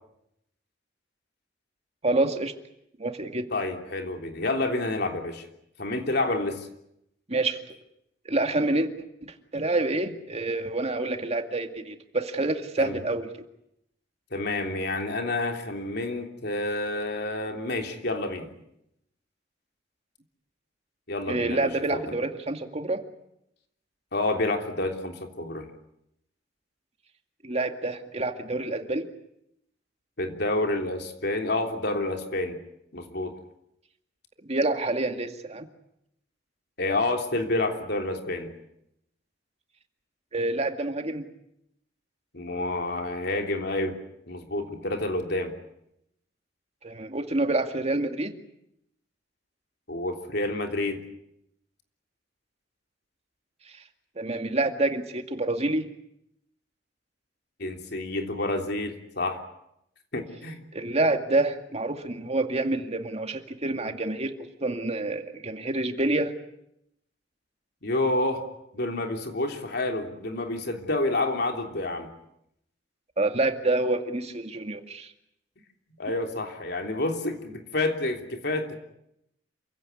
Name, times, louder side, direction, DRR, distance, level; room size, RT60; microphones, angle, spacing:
voice 1, 2.0-2.5 3.0-3.5 7.3-7.6 8.3-8.9 9.2-13.3 21.3-23.0 27.4-29.1 34.5-35.7 40.3-41.2 46.8-48.4 54.2-55.9 60.7-64.3 64.6-66.3 73.2-75.1, right 2 dB, 35° right, 6 dB, 2.2 m, -27 dB
voice 2, 3.5-5.4 5.8-6.7 12.8-13.0 14.3-18.5 21.1-22.1 24.1-25.7 30.2-32.6 32.9-33.3 36.8-38.5 42.3-44.0 44.3-45.5 49.9-51.0 57.6-59.4 60.1-60.6 67.8-68.4 68.7-72.1 76.0-78.7, left 2 dB, 60° left, 4 dB, 3.3 m, -29 dB
28.0 x 16.5 x 9.7 m, 0.80 s
head